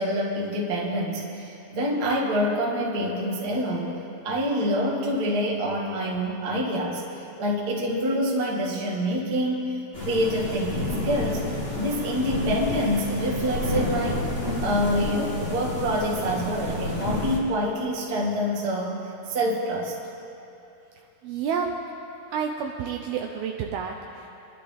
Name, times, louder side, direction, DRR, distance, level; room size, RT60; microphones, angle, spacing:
voice 1, 0.0-7.0 7.4-9.7 10.0-11.5 11.7-14.3 14.6-19.0 19.3-19.9, equal, 40° right, -3 dB, 1.3 m, -26 dB
sound 1, 9.9-17.4, left 2 dB, 35° left, 1.0 m, -30 dB
voice 2, 21.2-21.7 22.3-24.3, right 7 dB, 75° right, 2 dB, 2.3 m, -29 dB
26.5 x 12.0 x 3.5 m, 2.8 s
omnidirectional pair, 5.0 m